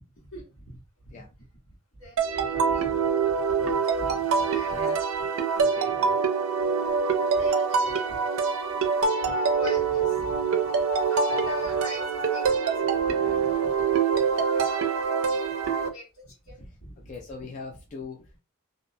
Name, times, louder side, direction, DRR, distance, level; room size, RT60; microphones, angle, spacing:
voice 1, 0.2-1.3 2.0-5.1 7.3-8.4 9.2-10.7 11.1-13.8 14.4-17.1 17.4-17.5, left 1 dB, 70° left, -3 dB, 1.4 m, -43 dB
sound 1, 2.2-15.9, right 5 dB, 65° right, 0.4 m, -25 dB
voice 2, 4.7-5.0 5.6-6.1 13.1-13.7 17.1-18.4, left 4 dB, 35° left, 1 dB, 0.3 m, -41 dB
2.6 x 2.1 x 2.5 m, 0.29 s
head